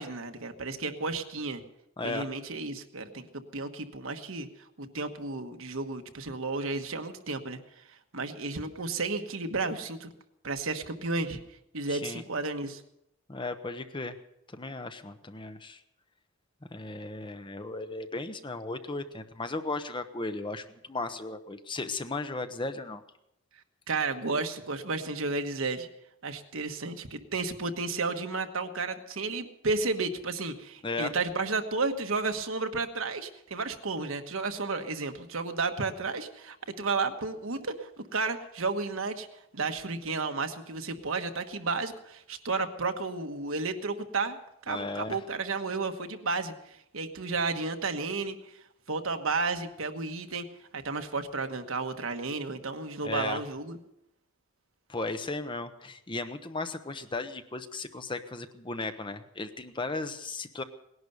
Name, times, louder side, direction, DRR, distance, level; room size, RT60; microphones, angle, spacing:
voice 1, 0.0-1.6 2.0-3.3 3.5-4.5 4.8-7.6 8.1-10.1 10.4-11.4 11.7-12.8 23.9-25.9 26.2-39.3 39.5-44.4 44.7-46.5 46.9-48.3 48.9-50.4 50.7-53.8, right 3 dB, 65° right, 7 dB, 1.3 m, -32 dB
voice 2, 2.0-2.3 11.9-12.2 13.3-14.2 14.5-15.8 16.7-23.0 30.8-31.1 44.7-45.2 53.0-53.4 54.9-60.6, left 3 dB, 20° left, 9 dB, 0.8 m, -36 dB
18.5 x 11.0 x 6.8 m, 0.81 s
head